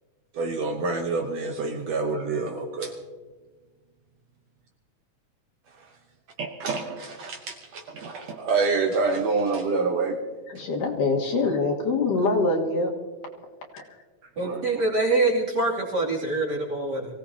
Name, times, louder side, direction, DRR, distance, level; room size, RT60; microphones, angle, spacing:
voice 1, 0.3-2.9 5.8-5.9 6.4-10.2 14.4-14.6, right 4 dB, 65° right, 3 dB, 1.9 m, -27 dB
voice 2, 10.5-12.9 13.7-13.8, left 3 dB, 80° left, 0 dB, 3.2 m, -24 dB
voice 3, 14.4-17.1, right 2 dB, 35° right, -3 dB, 3.1 m, -25 dB
24.0 x 16.5 x 2.9 m, 1.4 s
omnidirectional pair, 3.7 m